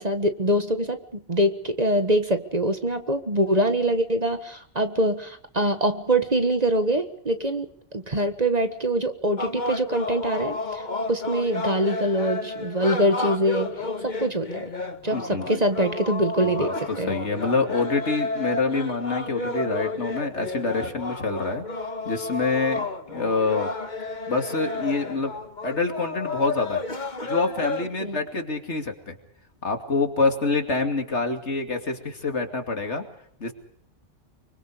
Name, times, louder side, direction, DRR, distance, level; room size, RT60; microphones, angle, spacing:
voice 1, 0.0-10.8 11.1-13.7 14.0-14.7 15.0-16.7 17.0-17.1 28.0-28.2, right 1 dB, 35° right, 8 dB, 1.6 m, -24 dB
sound 1, 9.4-27.9, left 3 dB, 40° left, 1.6 m, -31 dB
voice 2, 15.1-15.6 16.4-16.7 17.1-21.6 22.0-23.7 24.3-25.3 25.6-26.8 27.2-29.2 29.6-33.0 33.4-33.5, left 3 dB, 70° left, 5 dB, 2.9 m, -26 dB
25.5 x 24.0 x 5.0 m, 0.64 s
omnidirectional pair, 1.2 m